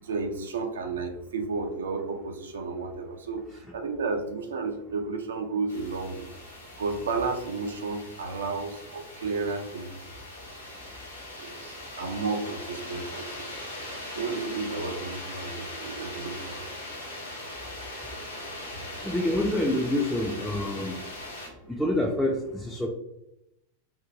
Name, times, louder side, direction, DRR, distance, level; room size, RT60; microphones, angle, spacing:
voice 1, 0.0-3.4 3.7-6.3 6.8-9.9 11.4-13.6 14.1-16.6 21.6-21.7, right 4 dB, 65° right, 5 dB, 0.4 m, -32 dB
sound 1, 5.7-21.5, left 1 dB, 80° left, 0.9 m, -40 dB
voice 2, 19.0-20.9 21.7-22.9, left 1 dB, 5° left, -2 dB, 0.3 m, -27 dB
2.6 x 2.1 x 2.7 m, 0.85 s
figure-of-eight pair, 90°, 0 cm